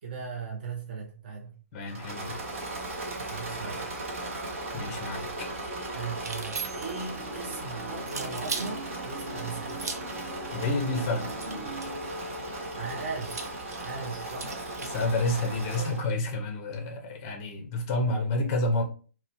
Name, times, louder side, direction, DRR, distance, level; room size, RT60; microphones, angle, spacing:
voice 1, 0.0-1.6 3.2-3.9 5.9-9.9 12.7-13.5 13.8-14.5, right 5 dB, 35° right, 0.4 m, -38 dB
voice 2, 1.7-2.4 4.7-5.5 10.5-11.3 14.9-18.8, left 2 dB, 20° left, 0.5 m, -29 dB
Engine / Mechanisms, 1.9-16.1, right 2 dB, 50° right, 0.8 m, -37 dB
sound 1, 5.2-13.7, equal, 10° right, 0.9 m, -43 dB
sound 2, 6.2-7.1 8.1-8.7 9.7-10.2 11.3-12.0 13.2-15.0, right 4 dB, 90° right, 0.5 m, -38 dB
2.8 x 2.1 x 2.5 m
hypercardioid pair, 165°, 8 cm